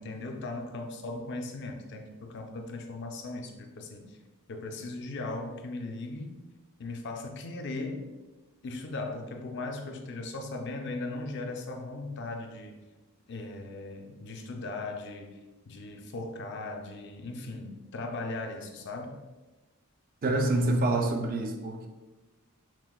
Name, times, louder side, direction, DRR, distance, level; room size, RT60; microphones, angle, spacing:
voice 1, 0.0-4.2 4.5-6.4 6.8-8.1 8.6-12.8 13.3-15.4 15.7-19.2 20.3-20.4, left 2 dB, 55° left, 4 dB, 0.4 m, -38 dB
voice 2, 20.2-21.9, right 2 dB, 40° right, 4 dB, 0.4 m, -27 dB
6.0 x 2.2 x 2.2 m, 1.2 s
head